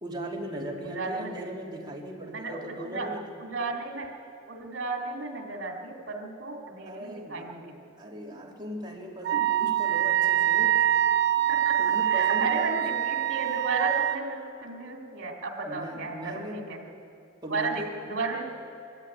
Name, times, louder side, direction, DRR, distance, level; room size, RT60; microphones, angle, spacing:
voice 1, 0.0-3.3 6.8-7.6 8.0-10.9 11.8-12.7 15.6-16.7 17.4-17.9, equal, 25° right, -2 dB, 3.1 m, -38 dB
voice 2, 0.8-1.3 1.8-1.9 2.3-4.1 4.5-7.7 9.3-9.7 11.5-16.8 17.5-18.5, right 3 dB, 75° right, 0 dB, 2.6 m, -34 dB
Wind instrument woodwind instrument, 9.2-14.2, right 11 dB, 60° right, 0.8 m, -24 dB
23.0 x 13.0 x 9.3 m, 2.6 s
head